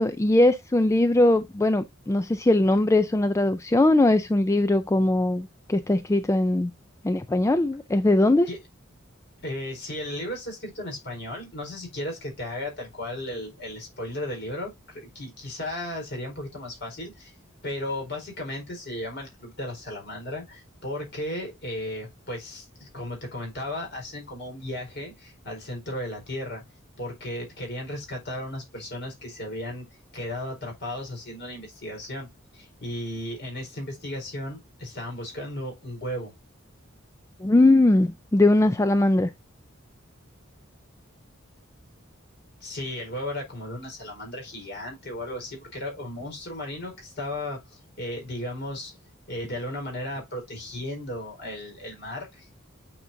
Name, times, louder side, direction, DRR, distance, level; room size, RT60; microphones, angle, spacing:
voice 1, 0.0-6.7 7.0-8.5 37.4-39.3, left 2 dB, 15° left, 0.3 m, -20 dB
voice 2, 9.4-17.3 17.6-26.6 27.0-29.9 30.1-32.3 32.5-36.3 42.6-48.9 49.3-52.6, left 1 dB, 55° left, 4.4 m, -35 dB
8.6 x 5.1 x 2.6 m
head